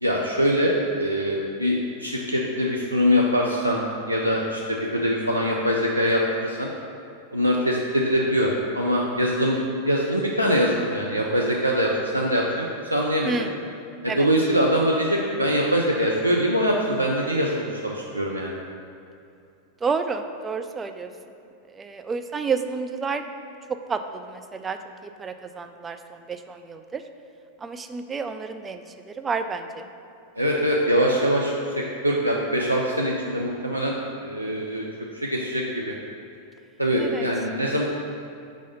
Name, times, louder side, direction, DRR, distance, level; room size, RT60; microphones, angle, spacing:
voice 1, 0.0-3.8 4.1-6.7 7.3-9.6 9.9-13.3 14.0-18.6 30.4-34.0 34.2-34.9 35.1-36.0 36.8-37.8, equal, 85° right, -2 dB, 0.4 m, -23 dB
voice 2, 19.8-21.1 21.7-23.3 23.9-24.8 25.0-27.0 27.6-29.8 37.0-37.3, right 5 dB, 15° right, 7 dB, 0.3 m, -30 dB
4.7 x 4.1 x 5.5 m, 2.5 s
figure-of-eight pair, 90°, 0 cm